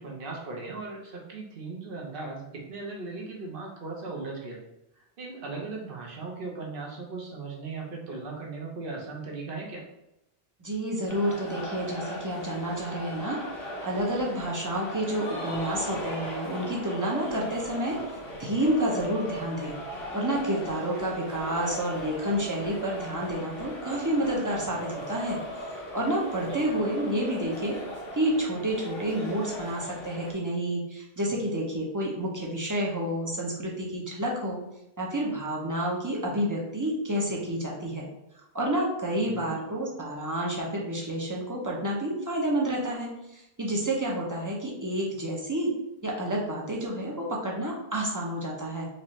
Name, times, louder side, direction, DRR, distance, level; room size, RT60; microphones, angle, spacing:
voice 1, 0.0-4.6 5.0-9.8 26.4-26.6 39.2-39.5, right 3 dB, 60° right, -1 dB, 1.0 m, -38 dB
voice 2, 10.6-13.4 13.8-18.0 18.4-25.4 25.7-27.8 28.1-34.6 35.0-38.1 38.5-45.7 46.0-48.9, right 1 dB, 20° right, -3 dB, 0.6 m, -29 dB
sound 1, 11.1-30.3, equal, 65° left, 1.2 m, -38 dB
4.2 x 2.5 x 3.1 m, 0.87 s
omnidirectional pair, 1.1 m